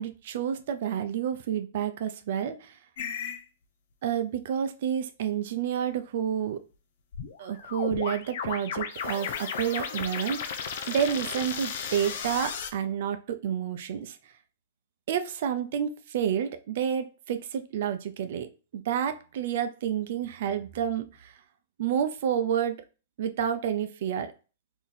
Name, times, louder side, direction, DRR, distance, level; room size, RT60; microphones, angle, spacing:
voice 1, 0.0-2.7 4.0-6.6 7.4-14.2 15.1-21.3 21.8-22.8 23.2-24.3, right 8 dB, 60° right, 8 dB, 0.5 m, -29 dB
sound 1, 3.0-3.4 7.1-12.7, left 7 dB, 65° left, 0.6 m, -34 dB
2.9 x 2.6 x 3.9 m, 0.34 s
hypercardioid pair, 130°, 0 cm